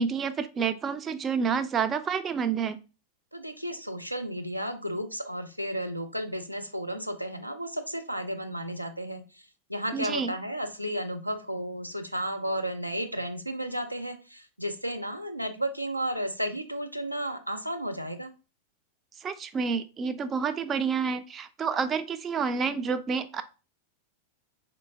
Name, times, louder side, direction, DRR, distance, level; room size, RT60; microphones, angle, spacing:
voice 1, 0.0-2.8 9.9-10.3 19.2-23.4, right 6 dB, 25° right, 11 dB, 0.3 m, -29 dB
voice 2, 3.3-18.3, equal, 90° right, 6 dB, 0.5 m, -33 dB
4.2 x 2.6 x 2.7 m, 0.32 s
figure-of-eight pair, 90°, 0 cm